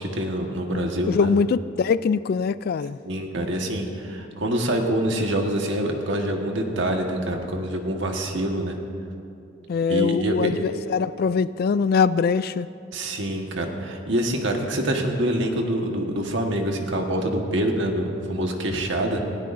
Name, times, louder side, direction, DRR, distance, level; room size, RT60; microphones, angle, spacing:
voice 1, 0.0-1.3 3.0-8.7 9.9-10.5 12.9-19.2, right 1 dB, 70° right, 2 dB, 1.5 m, -26 dB
voice 2, 0.7-3.0 9.7-12.7, left 5 dB, 55° left, 16 dB, 0.3 m, -23 dB
19.0 x 17.0 x 2.6 m, 2.6 s
head